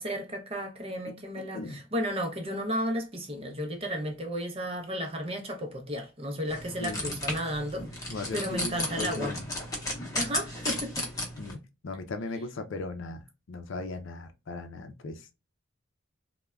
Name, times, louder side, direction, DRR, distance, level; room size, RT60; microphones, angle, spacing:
voice 1, 0.0-9.3 10.1-11.1, equal, 30° right, 0.6 m, -33 dB
voice 2, 1.1-1.8 6.8-7.2 8.1-9.5 11.4-15.3, left 3 dB, 70° left, 0.5 m, -38 dB
sound 1, 6.5-11.5, left 1 dB, 15° left, 0.7 m, -34 dB
3.3 x 2.1 x 2.2 m
head